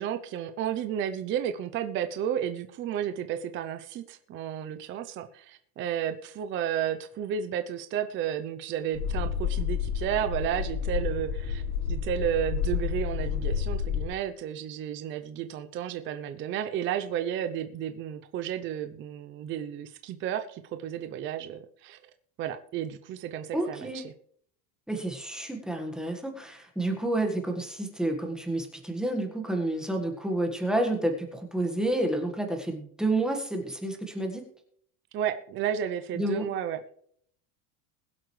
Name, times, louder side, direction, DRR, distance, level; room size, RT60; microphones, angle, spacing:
voice 1, 0.0-11.6 11.9-22.0 22.4-24.1 35.1-37.0, right 9 dB, 25° right, 9 dB, 0.6 m, -32 dB
sound 1, 8.9-14.1, left 7 dB, 75° left, 3.6 m, -30 dB
voice 2, 23.5-24.0 24.9-34.4 36.1-36.4, right 1 dB, ahead, 3 dB, 1.6 m, -29 dB
21.5 x 7.8 x 3.2 m, 0.64 s
cardioid pair, 165°, 44 cm